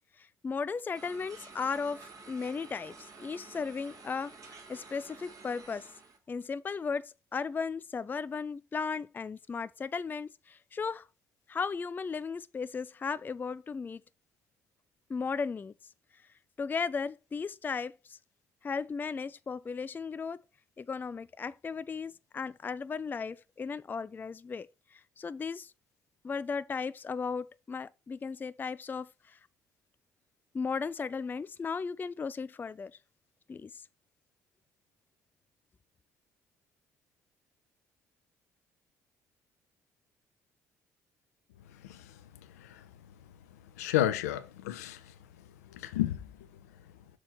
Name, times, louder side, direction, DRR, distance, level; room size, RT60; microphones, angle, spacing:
voice 1, 0.2-4.3 4.7-5.9 6.3-11.1 11.5-14.0 15.1-15.7 16.6-18.2 18.6-20.4 20.8-25.7 26.2-29.4 30.5-33.0 33.5-33.8, left 5 dB, 20° left, 0.4 m, -36 dB
sound 1, 0.9-6.2, right 4 dB, 40° right, 2.5 m, -51 dB
voice 2, 43.8-45.1 45.7-46.3, left 13 dB, 75° left, 0.6 m, -31 dB
6.2 x 4.2 x 6.1 m
figure-of-eight pair, 50°, 9 cm